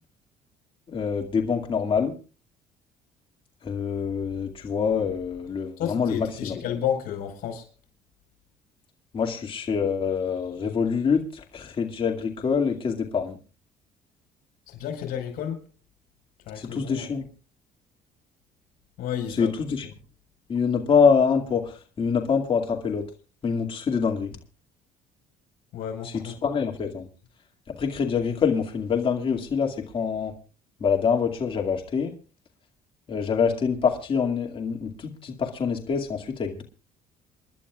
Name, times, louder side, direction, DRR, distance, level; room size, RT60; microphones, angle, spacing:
voice 1, 0.9-2.1 3.6-6.6 9.1-13.4 16.6-17.3 19.4-19.9 20.5-23.0 23.4-24.4 26.0-27.0 27.8-30.3 30.8-32.1 33.1-36.6, left 6 dB, 35° left, 2.3 m, -25 dB
voice 2, 5.8-7.7 14.7-15.6 16.5-17.1 19.0-19.5 25.7-26.5, left 9 dB, 75° left, 4.8 m, -31 dB
29.0 x 11.5 x 2.4 m
cardioid pair, 125°, 15 cm